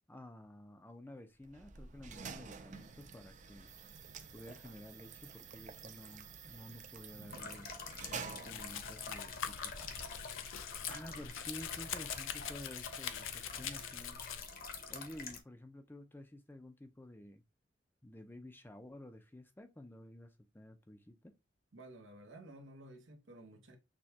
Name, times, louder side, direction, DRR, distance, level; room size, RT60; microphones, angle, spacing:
voice 1, 0.1-3.7 4.3-7.7 8.3-9.7 10.9-14.2 14.9-17.4 18.0-20.3 20.5-21.3, left 1 dB, 10° left, 0.5 m, -51 dB
sound 1, 1.4-10.7, right 5 dB, 40° right, 0.5 m, -50 dB
sound 2, 7.3-15.4, left 4 dB, 50° left, 0.8 m, -47 dB
Domestic sounds home sounds, 8.5-14.4, left 9 dB, 85° left, 0.5 m, -44 dB
voice 2, 21.7-23.8, right 1 dB, 75° right, 1.0 m, -53 dB
6.3 x 2.2 x 2.8 m
head